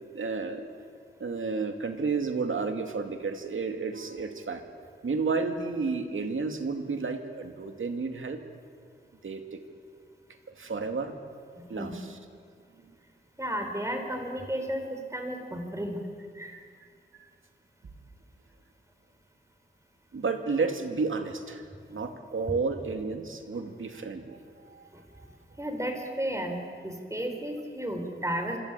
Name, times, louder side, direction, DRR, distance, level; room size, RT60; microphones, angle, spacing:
voice 1, 0.1-0.7 1.2-4.6 5.0-8.4 9.2-9.6 10.6-11.2 11.7-12.2 16.4-16.6 20.1-24.4 24.7-25.3, right 4 dB, 85° right, 5 dB, 2.5 m, -32 dB
voice 2, 13.4-16.0 16.4-16.6 25.6-26.6 26.8-28.6, equal, 15° right, 4 dB, 4.4 m, -33 dB
26.5 x 26.0 x 8.4 m, 2.2 s
wide cardioid pair, 100°, 20 cm